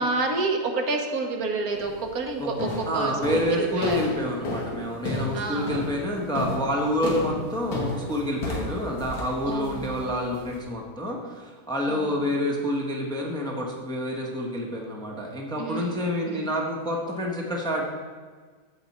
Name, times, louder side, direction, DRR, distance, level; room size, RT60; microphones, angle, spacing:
voice 1, 0.0-4.0 5.3-5.9 9.4-10.1 11.9-12.2 15.6-15.9 16.3-16.4, right 3 dB, 75° right, 3 dB, 1.4 m, -29 dB
sound 1, 1.8-2.1 2.6-10.6, left 2 dB, 85° left, 1.9 m, -33 dB
voice 2, 2.8-17.8, equal, 5° left, -1 dB, 0.9 m, -28 dB
13.5 x 4.9 x 4.3 m, 1.5 s
omnidirectional pair, 1.6 m